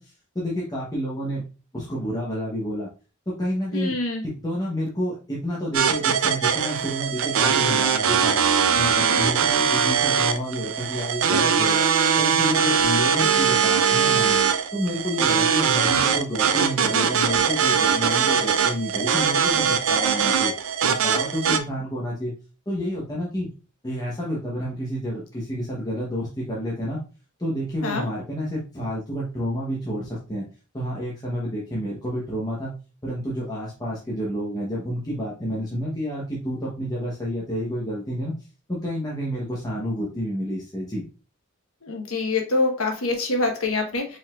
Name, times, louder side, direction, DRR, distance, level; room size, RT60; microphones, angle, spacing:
voice 1, 0.0-1.4 1.7-2.9 3.4-3.9 4.2-8.4 8.7-11.8 12.2-14.4 14.7-20.5 20.8-22.3 22.7-23.5 23.8-27.0 27.4-30.5 30.7-32.7 33.0-38.3 38.7-41.0, equal, 20° left, -5 dB, 1.0 m, -29 dB
voice 2, 3.7-4.2 27.8-28.0 41.8-44.2, left 3 dB, 75° left, 2 dB, 1.2 m, -25 dB
sound 1, 5.7-21.6, right 6 dB, 65° right, 0.5 m, -21 dB
5.1 x 3.9 x 2.4 m, 0.34 s
head